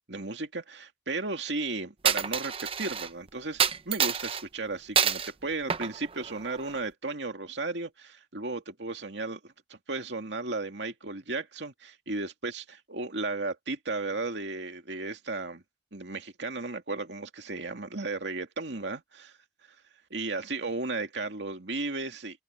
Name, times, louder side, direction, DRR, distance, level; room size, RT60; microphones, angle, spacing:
voice 1, 0.1-12.6 12.9-15.6 15.9-19.4 20.1-22.4, right 3 dB, 70° right, 2.4 m, -35 dB
Coin (dropping), 2.0-3.1 3.6-4.4 5.0-5.3 5.7-6.8, right 7 dB, 30° right, 0.7 m, -27 dB
open air
head